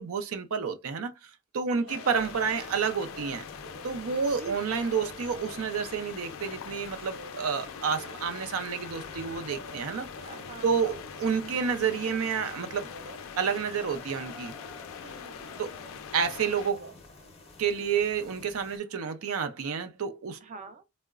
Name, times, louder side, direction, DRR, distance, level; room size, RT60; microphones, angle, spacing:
voice 1, 0.0-3.4 3.8-10.1 10.6-12.9 13.4-14.5 15.6-15.7 16.1-16.9 17.6-20.4, right 6 dB, 85° right, 0.5 m, -30 dB
sound 1, 1.7-2.6 3.0-6.5 7.0-11.9 12.8-13.3 15.1-15.2 15.5-16.0 16.2-17.0 18.4-18.5, right 3 dB, 55° right, 0.8 m, -51 dB
sound 2, 1.9-16.7, left 7 dB, 70° left, 0.3 m, -43 dB
sound 3, 2.1-18.8, left 2 dB, 30° left, 0.6 m, -49 dB
voice 2, 4.4-5.0 10.2-11.0 15.0-15.8 20.4-20.8, right 4 dB, 35° right, 0.4 m, -47 dB
3.7 x 2.1 x 2.3 m
head